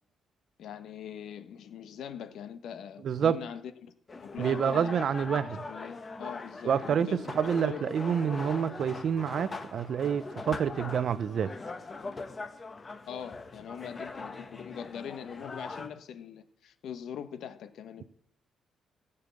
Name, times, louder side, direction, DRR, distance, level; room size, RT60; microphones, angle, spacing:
voice 1, 0.6-3.9 4.2-5.0 5.3-7.2 7.6-8.0 13.1-18.0, left 8 dB, 70° left, 1.2 m, -42 dB
voice 2, 3.0-3.4 4.4-5.6 6.6-7.1 7.4-11.5, right 7 dB, 55° right, 0.7 m, -28 dB
sound 1, 4.1-15.9, left 3 dB, 25° left, 1.4 m, -41 dB
15.5 x 6.8 x 7.0 m
cardioid pair, 125°, 0 cm